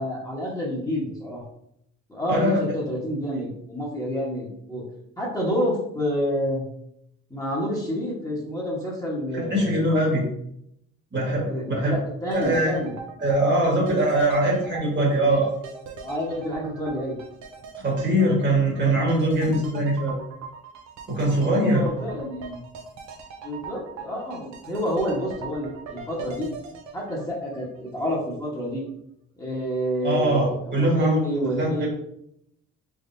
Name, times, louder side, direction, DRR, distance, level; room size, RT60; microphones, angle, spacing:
voice 1, 0.0-1.4 2.1-4.8 5.2-6.6 7.3-9.8 11.4-12.9 15.1-15.4 16.0-17.2 21.4-22.6 23.4-26.5 26.9-28.8 29.4-31.9, equal, 10° left, -5 dB, 1.2 m, -29 dB
voice 2, 2.3-2.6 9.3-10.3 11.1-12.0 12.3-12.7 13.2-15.5 17.8-20.2 21.1-21.8 30.0-31.2 31.6-31.9, right 1 dB, 35° right, -2 dB, 1.5 m, -22 dB
sound 1, 12.3-28.2 28.5-28.6, right 5 dB, 70° right, 0.6 m, -41 dB
3.6 x 3.3 x 2.6 m, 0.75 s
cardioid pair, 90°, 30 cm